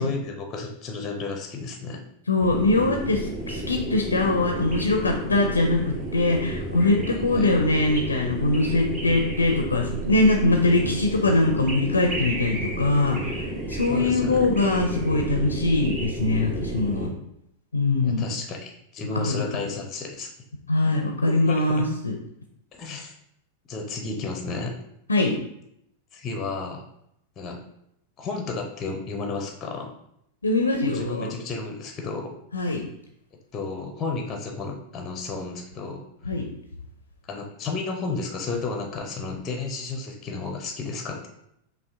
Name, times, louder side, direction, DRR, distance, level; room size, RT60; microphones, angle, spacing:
voice 1, 0.0-2.0 7.1-7.5 13.9-14.4 18.0-20.3 21.3-21.9 22.7-23.1 23.7-24.7 26.1-26.8 27.4-27.6 28.2-29.9 30.8-32.3 33.5-36.0 37.3-41.3, left 3 dB, 25° left, 4 dB, 0.6 m, -32 dB
voice 2, 2.3-17.1 17.7-18.2 19.1-19.8 20.7-22.1 25.1-25.3 30.4-31.4 32.5-32.8 36.2-36.5, left 2 dB, 75° left, 3 dB, 0.5 m, -22 dB
sound 1, 2.4-17.1, right 1 dB, 30° right, 1.2 m, -32 dB
5.5 x 2.4 x 3.5 m, 0.77 s
figure-of-eight pair, 90°, 0 cm